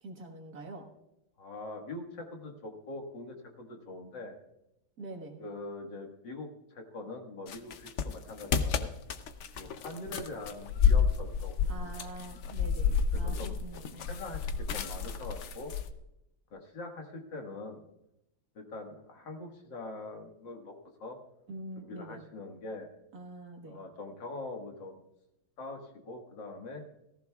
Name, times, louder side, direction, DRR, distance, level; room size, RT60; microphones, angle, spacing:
voice 1, 0.0-0.9 5.0-5.3 11.7-14.1 21.5-22.2 23.1-23.8, right 2 dB, 50° right, 3 dB, 1.8 m, -44 dB
voice 2, 1.4-4.3 5.4-8.9 9.6-12.1 13.1-13.6 14.1-15.7 16.5-17.9 18.5-20.7 21.0-21.2 21.8-22.9 23.6-25.0 25.6-26.8, left 2 dB, 65° left, 2 dB, 2.3 m, -43 dB
sound 1, 7.5-15.9, left 6 dB, 80° left, 0.6 m, -30 dB
17.5 x 14.5 x 2.3 m, 0.86 s
omnidirectional pair, 2.1 m